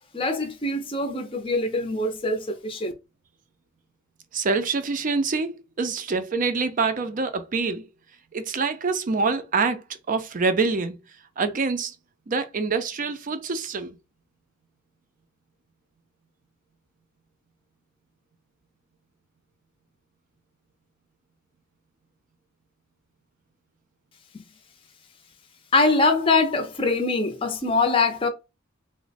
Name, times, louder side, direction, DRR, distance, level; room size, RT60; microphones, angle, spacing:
voice 1, 0.1-2.9 24.3-24.4 25.7-28.3, left 3 dB, 25° left, 0.5 m, -23 dB
voice 2, 4.3-7.9 8.3-11.0 11.4-11.9 12.3-14.0, right 4 dB, 40° right, 0.5 m, -26 dB
3.0 x 2.1 x 4.0 m
head